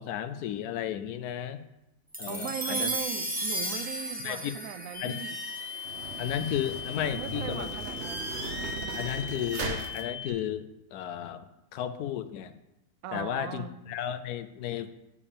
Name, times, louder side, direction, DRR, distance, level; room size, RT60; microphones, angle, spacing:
voice 1, 0.0-1.6 2.2-2.9 4.2-4.5 5.0-5.2 6.2-7.7 8.9-10.7 10.9-12.5 13.1-14.9, left 10 dB, 90° left, 1.1 m, -33 dB
sound 1, 2.1-6.7, right 1 dB, 5° right, 0.8 m, -35 dB
voice 2, 2.3-5.4 7.1-8.4 8.7-9.1 13.0-13.8, right 9 dB, 75° right, 1.0 m, -39 dB
sound 2, 4.9-10.3, left 8 dB, 30° left, 0.4 m, -39 dB
sound 3, 5.1-10.0, right 4 dB, 50° right, 1.1 m, -38 dB
7.0 x 5.1 x 6.7 m
omnidirectional pair, 1.6 m